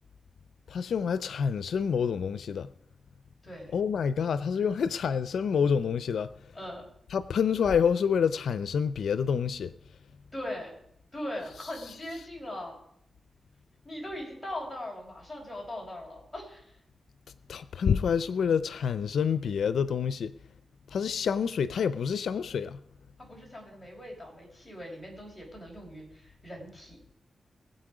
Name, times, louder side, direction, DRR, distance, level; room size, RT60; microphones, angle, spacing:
voice 1, 0.7-2.7 3.7-6.3 7.1-9.7 17.5-20.3 20.9-22.8, left 7 dB, 85° left, 0.5 m, -27 dB
voice 2, 6.5-6.9 10.3-10.8 11.1-12.8 13.8-16.7 23.2-27.1, left 1 dB, ahead, 5.5 m, -40 dB
22.0 x 8.1 x 4.9 m
wide cardioid pair, 125°, 0 cm